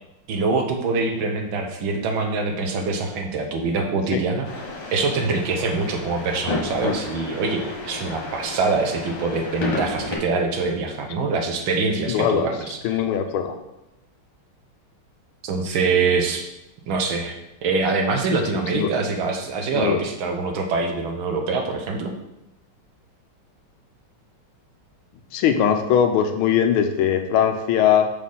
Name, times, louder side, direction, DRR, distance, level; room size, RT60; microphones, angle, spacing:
voice 1, 0.3-4.5 4.9-12.8 15.4-16.5 16.9-17.3 17.6-22.1, right 4 dB, 75° right, 3 dB, 1.6 m, -24 dB
sound 1, 4.4-10.2, left 3 dB, 60° left, 1.9 m, -31 dB
voice 2, 12.1-12.5 12.8-13.5 18.5-18.9 19.7-20.0 25.3-28.1, left 8 dB, 85° left, 6 dB, 1.5 m, -20 dB
6.3 x 4.1 x 5.4 m, 0.92 s
omnidirectional pair, 2.3 m